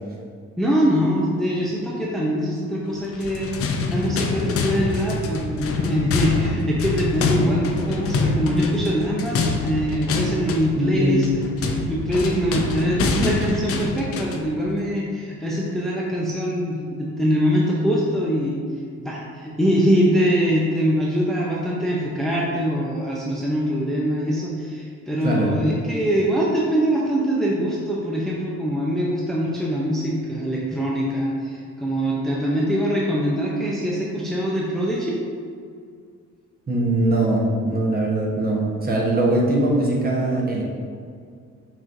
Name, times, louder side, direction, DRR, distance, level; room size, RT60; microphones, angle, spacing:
voice 1, 0.6-18.6 19.0-35.2, equal, ahead, -5 dB, 0.6 m, -23 dB
sound 1, 3.1-14.5, left 3 dB, 50° left, 0.5 m, -25 dB
voice 2, 10.7-11.3 25.2-25.5 36.7-40.6, right 1 dB, 30° right, -3 dB, 1.1 m, -21 dB
6.0 x 3.1 x 2.6 m, 2.2 s
cardioid pair, 90°, 30 cm